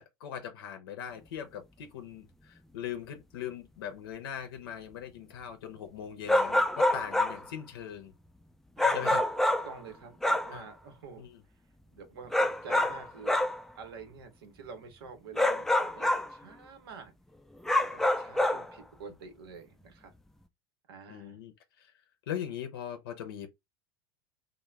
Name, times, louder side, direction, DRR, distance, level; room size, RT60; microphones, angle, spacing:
voice 1, 0.0-8.1 8.9-9.3 10.5-10.7 11.2-11.4 21.1-21.9 22.3-23.5, left 9 dB, 85° left, 0.6 m, -40 dB
sound 1, 6.3-7.5 8.8-9.8 10.2-10.6 12.3-13.6 15.4-16.3 17.6-18.7, left 1 dB, 5° left, 0.3 m, -26 dB
voice 2, 8.8-9.1 9.7-11.3 11.9-13.4 13.7-17.1 17.9-20.1 20.9-21.4, right 5 dB, 90° right, 0.8 m, -47 dB
2.3 x 2.1 x 3.0 m
hypercardioid pair, 105°, 12 cm